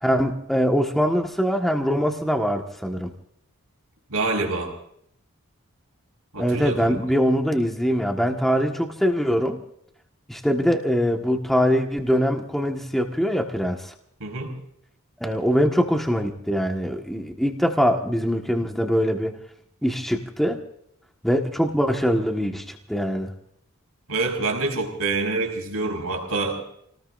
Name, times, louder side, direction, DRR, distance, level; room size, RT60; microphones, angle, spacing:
voice 1, 0.0-3.1 6.4-9.6 10.3-13.9 15.2-19.4 19.8-20.6 21.2-23.3, equal, ahead, 2 dB, 1.4 m, -23 dB
voice 2, 4.1-4.7 6.3-7.0 14.2-14.5 24.1-26.7, right 3 dB, 90° right, 2 dB, 4.8 m, -26 dB
29.5 x 19.5 x 2.6 m, 0.71 s
head